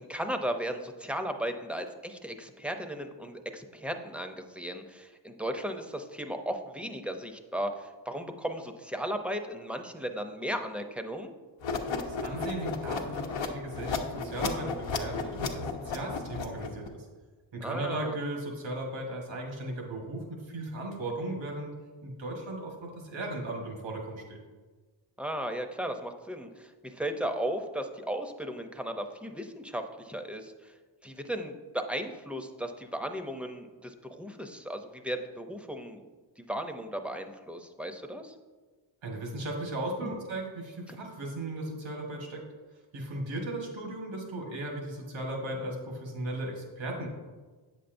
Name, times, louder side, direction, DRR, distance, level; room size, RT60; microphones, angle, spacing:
voice 1, 0.0-11.3 17.6-18.2 25.2-30.8 31.0-36.0 36.4-38.3 40.0-40.2 40.9-41.0, equal, 5° right, 6 dB, 0.6 m, -36 dB
sound 1, 11.6-16.9, left 4 dB, 90° left, 0.8 m, -34 dB
voice 2, 12.0-17.1 17.5-21.7 22.0-24.4 39.0-42.4 42.9-47.1, right 1 dB, 85° right, 0 dB, 1.5 m, -36 dB
8.2 x 6.8 x 2.6 m, 1.4 s
cardioid pair, 80°, 44 cm